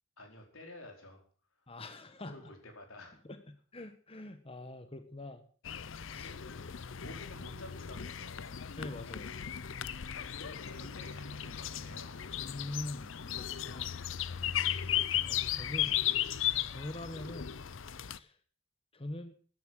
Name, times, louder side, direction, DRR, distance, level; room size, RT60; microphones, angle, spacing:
voice 1, 0.2-1.2 1.7-1.8 2.2-3.2 6.2-8.6 10.1-12.3, left 1 dB, 90° left, 3 dB, 4.7 m, -51 dB
voice 2, 1.7-2.4 3.2-3.4 3.7-5.4 6.1-6.3 8.8-9.3 12.4-13.9 14.8-16.0 16.6-17.5 18.1-18.4 18.9-19.3, left 1 dB, 30° left, 9 dB, 1.2 m, -44 dB
sound 1, 5.6-18.2, left 10 dB, 65° left, 0.6 m, -36 dB
13.5 x 10.0 x 7.5 m, 0.43 s
head